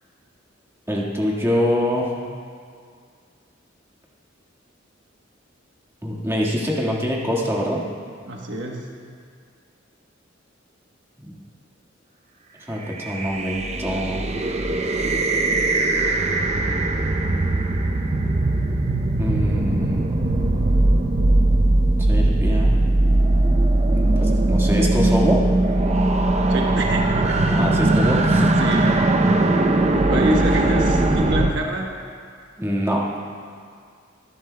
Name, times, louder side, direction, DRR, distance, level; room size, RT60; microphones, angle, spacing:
voice 1, 0.9-2.1 6.0-7.9 11.2-11.3 12.7-14.3 19.2-20.1 22.0-22.8 23.9-25.4 27.5-28.6 32.6-33.0, equal, 15° right, -4 dB, 1.6 m, -24 dB
voice 2, 8.3-8.8 26.5-27.6 28.6-28.9 30.0-31.9, right 1 dB, 65° right, 0 dB, 1.1 m, -26 dB
sound 1, 12.9-31.5, right 2 dB, 35° right, 0.6 m, -19 dB
23.5 x 11.0 x 2.2 m, 2.1 s
head